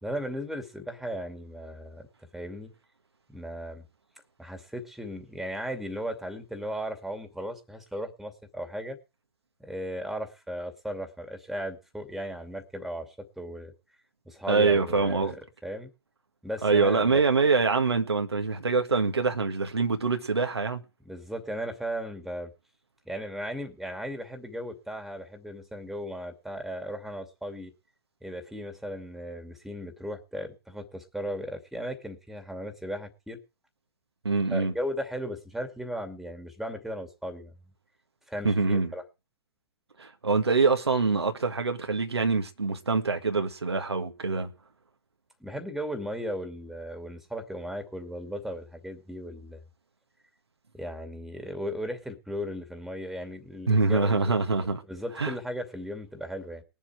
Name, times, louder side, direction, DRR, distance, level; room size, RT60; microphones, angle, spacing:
voice 1, 0.0-2.1 2.3-2.7 3.3-3.9 4.4-9.0 9.6-13.7 14.3-15.4 15.6-15.9 16.4-17.2 21.1-22.5 23.1-27.7 28.2-33.4 34.5-37.5 38.3-39.0 45.4-49.6 50.7-54.4 54.9-56.6, equal, ahead, 2.5 m, -36 dB
voice 2, 14.5-15.3 16.6-20.8 34.2-34.7 38.4-38.9 40.0-44.5 53.7-54.8 55.2-55.3, right 4 dB, 80° right, 1.7 m, -25 dB
21.5 x 7.4 x 4.7 m
figure-of-eight pair, 110°, 13 cm